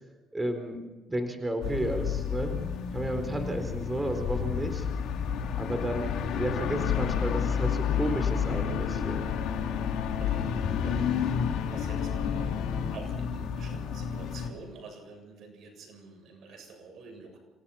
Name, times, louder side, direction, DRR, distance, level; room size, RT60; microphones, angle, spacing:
voice 1, 0.3-0.8 1.1-2.5 2.9-4.9 5.6-9.3, right 1 dB, 15° right, 6 dB, 4.2 m, -32 dB
sound 1, 1.6-14.5, left 7 dB, 65° left, 3.3 m, -30 dB
sound 2, 6.5-13.0, left 8 dB, 90° left, 1.8 m, -39 dB
voice 2, 10.2-11.3 11.7-17.4, right 4 dB, 60° right, 4 dB, 7.8 m, -48 dB
27.5 x 17.5 x 5.8 m, 1.2 s
cardioid pair, 95°, 0 cm